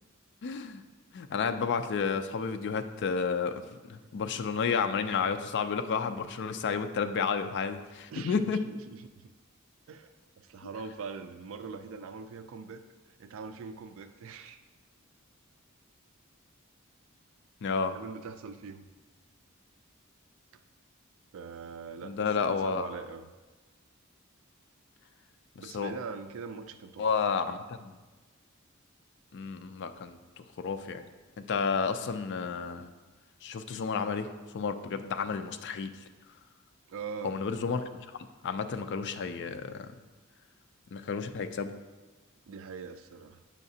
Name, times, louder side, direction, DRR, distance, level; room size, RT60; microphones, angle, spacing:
voice 1, 0.4-0.8 1.1-3.6 3.9-8.6 17.6-17.9 22.0-22.9 25.7-25.9 27.0-27.9 29.3-31.0 31.5-32.9 33.4-34.3 34.5-35.9 37.2-37.9 38.4-39.9 40.9-41.7, left 5 dB, 55° left, 8 dB, 0.4 m, -31 dB
voice 2, 8.1-9.3 9.9-12.8 13.1-14.6 17.9-18.9 21.3-23.3 25.6-27.0 36.9-37.4 42.5-43.4, right 5 dB, 65° right, 9 dB, 0.4 m, -42 dB
8.3 x 5.7 x 2.7 m, 1.2 s
head